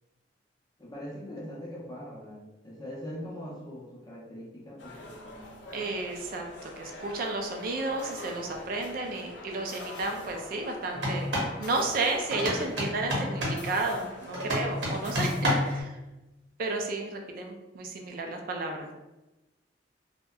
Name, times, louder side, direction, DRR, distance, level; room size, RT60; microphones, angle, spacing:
voice 1, 0.8-5.5, equal, 25° left, -5 dB, 0.6 m, -42 dB
sound 1, 4.8-15.8, left 1 dB, 85° left, 0.5 m, -44 dB
voice 2, 5.7-11.3 11.6-16.0 16.6-18.9, right 2 dB, 55° right, 3 dB, 0.3 m, -32 dB
sound 2, 10.9-11.6 12.3-13.7 14.3-15.8, equal, 85° right, 0.8 m, -29 dB
2.7 x 2.1 x 2.2 m, 1.0 s
head